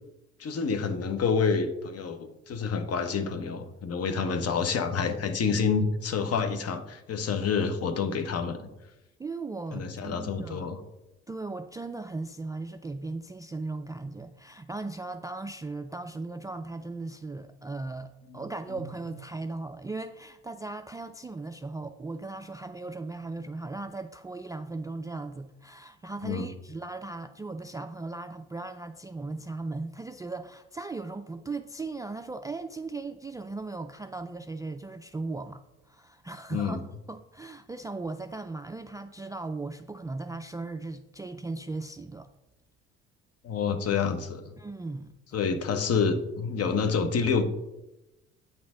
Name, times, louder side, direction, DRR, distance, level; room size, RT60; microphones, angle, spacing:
voice 1, 0.4-8.7 9.7-10.8 18.3-18.4 26.2-26.5 36.5-36.8 43.4-44.5 45.3-47.4, left 5 dB, 45° left, 1.1 m, -28 dB
voice 2, 9.2-10.8 11.3-36.8 37.1-42.3 44.6-45.2, right 3 dB, 10° right, 0.3 m, -37 dB
8.7 x 6.1 x 3.7 m
hypercardioid pair, 65°, 34 cm